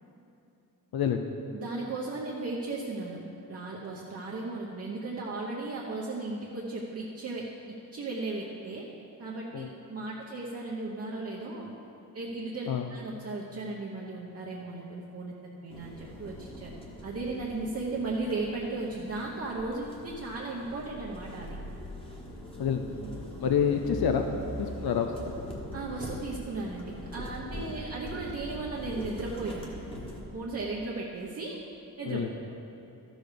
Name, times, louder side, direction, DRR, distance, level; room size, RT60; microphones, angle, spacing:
voice 1, 0.9-1.3 9.5-9.7 12.7-12.9 22.6-22.9 23.4-24.3 24.6-25.3 32.1-32.3, left 7 dB, 85° left, 5 dB, 0.6 m, -28 dB
voice 2, 1.5-3.2 3.5-7.5 7.9-8.9 9.2-11.7 12.1-15.4 15.6-16.7 17.0-21.6 25.7-29.7 30.3-31.6 32.0-32.5, right 3 dB, 40° right, -4 dB, 0.9 m, -36 dB
sound 1, 15.7-30.2, equal, 15° left, 1.3 m, -42 dB
13.0 x 6.5 x 5.0 m, 2.8 s
wide cardioid pair, 170°, 36 cm